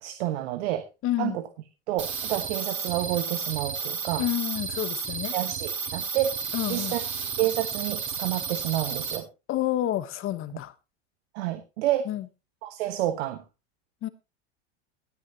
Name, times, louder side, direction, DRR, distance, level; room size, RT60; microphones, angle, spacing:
voice 1, 0.0-0.9 1.2-1.4 1.9-4.2 5.3-7.0 7.4-9.3 11.3-12.1 12.6-13.4, right 13 dB, 75° right, 1.3 m, -29 dB
voice 2, 1.0-1.4 4.2-5.3 6.5-7.0 9.5-10.7 12.1-12.3 14.0-14.1, left 13 dB, 40° left, 1.1 m, -29 dB
sound 1, 2.0-9.2, right 6 dB, 35° right, 3.5 m, -32 dB
18.5 x 9.8 x 2.9 m
supercardioid pair, 120°, 34 cm